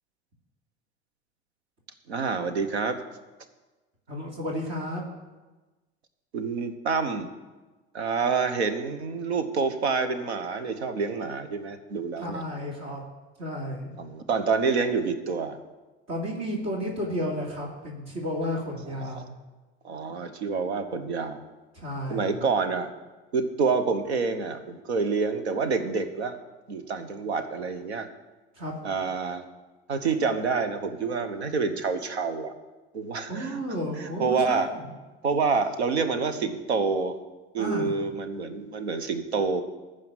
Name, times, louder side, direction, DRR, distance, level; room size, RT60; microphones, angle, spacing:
voice 1, 2.1-3.0 6.3-7.3 7.9-12.4 14.0-15.6 19.0-19.2 19.8-21.4 22.1-22.9 23.3-26.4 26.7-28.1 28.8-29.4 29.9-32.5 32.9-33.6 34.0-34.7 35.2-37.2 37.5-39.6, right 4 dB, 85° right, 10 dB, 1.1 m, -27 dB
voice 2, 4.1-5.0 12.2-13.0 13.4-13.9 16.1-19.3 21.7-22.4 28.5-28.7 33.3-34.9 37.6-37.9, equal, 55° right, -2 dB, 3.1 m, -32 dB
14.5 x 4.9 x 9.1 m, 1.2 s
hypercardioid pair, 70°, 32 cm